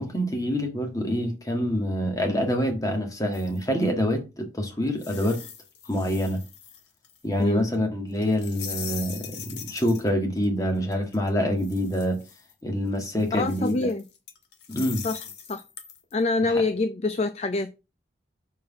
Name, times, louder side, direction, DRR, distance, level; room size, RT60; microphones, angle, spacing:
voice 1, 0.0-5.4 5.9-6.4 7.2-12.2 12.6-13.9 14.7-15.0, equal, 20° left, 1.7 m, -26 dB
sound 1, 3.3-3.9 5.0-7.4 7.7-7.8 8.2-10.1 10.4-10.5 10.8-12.5 13.0-16.1, left 7 dB, 75° left, 1.4 m, -41 dB
voice 2, 13.3-14.0 15.0-15.2 15.5-15.6 16.1-17.8, left 3 dB, 35° left, 0.4 m, -25 dB
5.7 x 4.7 x 6.0 m
head